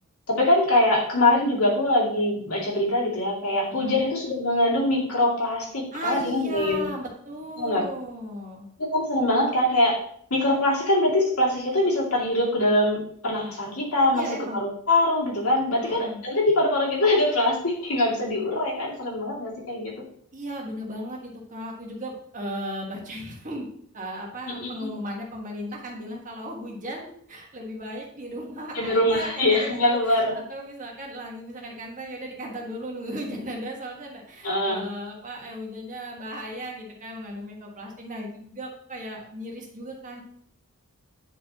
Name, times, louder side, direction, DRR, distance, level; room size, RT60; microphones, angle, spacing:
voice 1, 0.3-6.9 7.6-7.8 8.8-10.0 10.3-14.2 14.5-19.9 24.5-24.9 28.7-30.4 34.4-34.9, left 1 dB, 85° left, -4 dB, 2.5 m, -23 dB
voice 2, 5.9-8.7 14.1-14.6 15.8-16.2 20.3-23.7 23.9-40.2, equal, 35° right, -1 dB, 1.5 m, -36 dB
9.8 x 4.6 x 2.9 m, 0.65 s
head